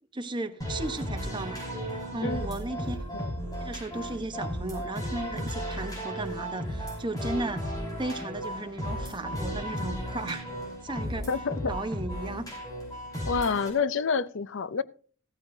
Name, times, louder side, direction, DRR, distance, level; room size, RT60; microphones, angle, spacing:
voice 1, 0.1-1.6 2.1-3.0 3.6-7.7 8.0-10.5 10.8-11.3 11.7-12.5, right 2 dB, 25° right, 1.0 m, -35 dB
sound 1, 0.6-13.7, equal, 15° left, 5.0 m, -35 dB
voice 2, 11.3-11.8 13.3-14.8, left 5 dB, 65° left, 0.6 m, -28 dB
15.0 x 13.5 x 2.7 m
head